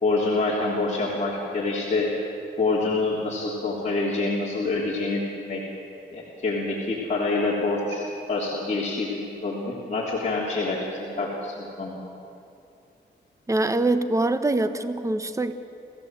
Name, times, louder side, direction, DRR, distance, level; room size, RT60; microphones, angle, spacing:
voice 1, 0.0-2.1 2.6-5.6 6.1-12.0, left 3 dB, 35° left, -5 dB, 3.4 m, -26 dB
voice 2, 13.5-15.5, right 2 dB, 15° right, 10 dB, 1.0 m, -24 dB
28.0 x 15.0 x 7.8 m, 2.7 s
cardioid pair, 85°, 20 cm